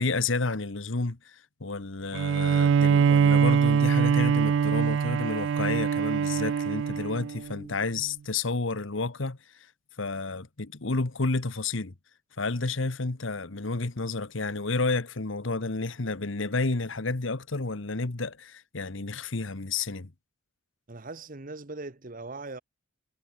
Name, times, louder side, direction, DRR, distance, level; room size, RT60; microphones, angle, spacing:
voice 1, 0.0-9.4 10.0-11.9 12.4-20.1, left 3 dB, 70° left, 1.3 m, -30 dB
Bowed string instrument, 2.1-7.6, right 6 dB, 60° right, 0.3 m, -23 dB
voice 2, 20.9-22.6, right 3 dB, 40° right, 1.2 m, -40 dB
head